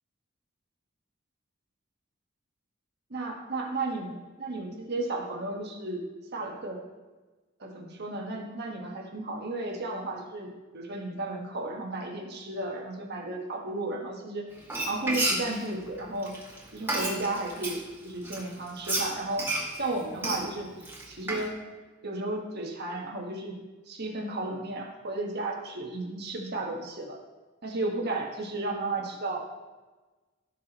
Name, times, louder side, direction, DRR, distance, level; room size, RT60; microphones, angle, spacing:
voice 1, 3.1-6.0 6.3-6.8 7.6-14.5 14.8-16.3 16.7-19.4 19.8-21.6 22.0-23.6 23.9-27.2 27.6-29.5, right 2 dB, 55° right, 1 dB, 1.5 m, -34 dB
Frying (food), 14.6-17.8 18.2-21.5, right 2 dB, 10° right, 2.1 m, -31 dB
17.0 x 6.0 x 3.0 m, 1.2 s
head